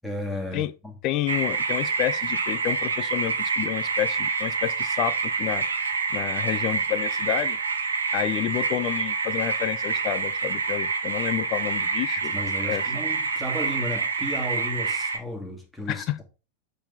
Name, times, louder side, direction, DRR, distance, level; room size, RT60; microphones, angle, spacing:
voice 1, 0.0-1.0 12.3-16.2, left 1 dB, ahead, 2.1 m, -34 dB
voice 2, 1.0-5.6 6.1-7.6 8.1-12.3 12.6-12.8 15.9-16.2, left 12 dB, 40° left, 0.5 m, -29 dB
sound 1, 1.3-15.2, right 4 dB, 70° right, 1.2 m, -27 dB
7.9 x 4.1 x 4.0 m
figure-of-eight pair, 90°, 0 cm